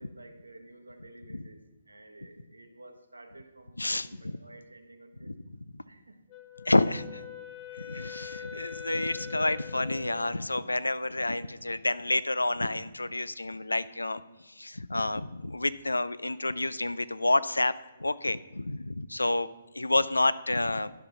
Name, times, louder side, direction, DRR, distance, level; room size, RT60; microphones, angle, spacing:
voice 1, 0.0-5.5 5.8-6.2 7.3-7.5, right 2 dB, 75° right, 5 dB, 1.2 m, -52 dB
voice 2, 3.8-4.4 5.3-5.4 6.6-7.2 7.7-19.5 19.7-20.9, left 2 dB, 75° left, 17 dB, 0.4 m, -29 dB
Wind instrument woodwind instrument, 6.3-10.4, left 8 dB, 25° left, 1.0 m, -43 dB
11.5 x 5.5 x 5.9 m, 1.1 s
figure-of-eight pair, 130°, 0 cm